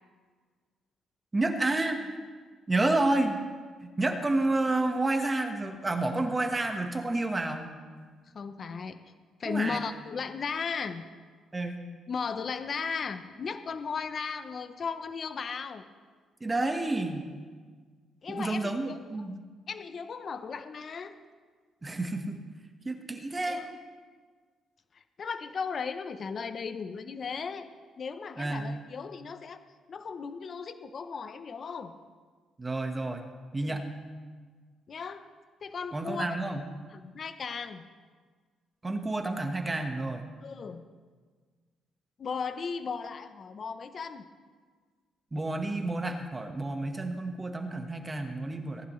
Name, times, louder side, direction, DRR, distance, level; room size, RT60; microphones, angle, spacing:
voice 1, 1.3-2.0 2.7-3.4 3.8-7.7 9.4-9.8 11.5-11.8 16.4-17.3 18.3-19.4 21.8-22.4 22.8-23.6 28.4-28.7 32.6-33.2 33.5-33.8 35.9-36.6 38.8-40.2 45.3-48.9, right 2 dB, 20° right, 5 dB, 1.4 m, -30 dB
voice 2, 8.3-9.0 9.4-11.0 12.1-15.8 18.2-19.3 19.7-21.2 23.5-23.6 24.9-27.7 28.0-29.6 29.9-31.9 33.6-33.8 34.9-35.3 35.6-36.3 36.9-37.8 40.4-40.9 42.2-44.3, left 5 dB, 50° left, 10 dB, 0.7 m, -36 dB
18.0 x 11.0 x 3.2 m, 1.5 s
cardioid pair, 90°, 0 cm